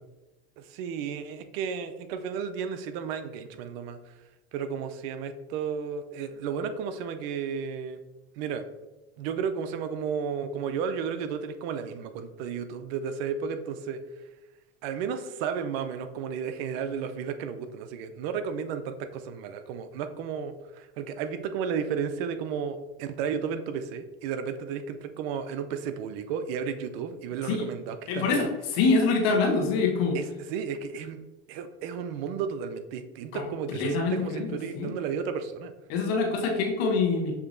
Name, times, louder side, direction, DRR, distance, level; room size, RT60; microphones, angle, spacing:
voice 1, 0.6-4.0 4.5-8.0 8.4-8.6 9.2-14.0 14.8-28.5 30.1-31.2 31.5-35.7, right 6 dB, 70° right, 9 dB, 0.5 m, -33 dB
voice 2, 28.1-30.2 33.3-33.4 33.7-34.5 34.7-34.9 35.9-37.4, left 4 dB, 75° left, 1 dB, 1.2 m, -25 dB
6.7 x 2.8 x 2.6 m, 1.1 s
supercardioid pair, 115°, 31 cm